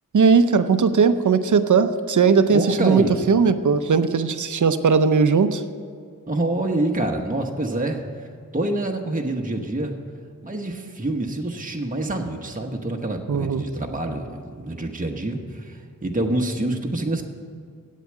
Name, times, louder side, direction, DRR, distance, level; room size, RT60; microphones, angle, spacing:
voice 1, 0.1-5.6 13.3-13.6, right 5 dB, 60° right, 11 dB, 0.7 m, -18 dB
voice 2, 2.5-3.3 6.3-8.0 8.5-9.9 10.4-17.2, right 2 dB, 25° right, 2 dB, 1.1 m, -26 dB
8.4 x 8.0 x 8.7 m, 2.2 s
wide cardioid pair, 50°, 34 cm